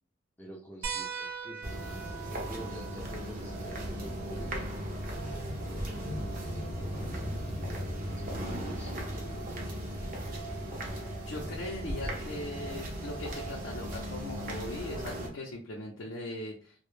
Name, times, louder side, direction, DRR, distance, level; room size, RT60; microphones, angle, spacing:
voice 1, 0.4-4.6 5.2-9.9, equal, 10° left, -2 dB, 0.4 m, -48 dB
sound 1, 0.8-5.9 7.4-7.5 9.2-9.3, right 6 dB, 85° right, 0.6 m, -43 dB
sound 2, 1.6-15.3, right 1 dB, 45° right, 0.6 m, -37 dB
sound 3, 4.5-10.8, left 2 dB, 50° left, 0.8 m, -47 dB
voice 2, 11.2-16.7, left 1 dB, 70° left, -2 dB, 0.5 m, -40 dB
2.1 x 2.0 x 3.0 m, 0.41 s
head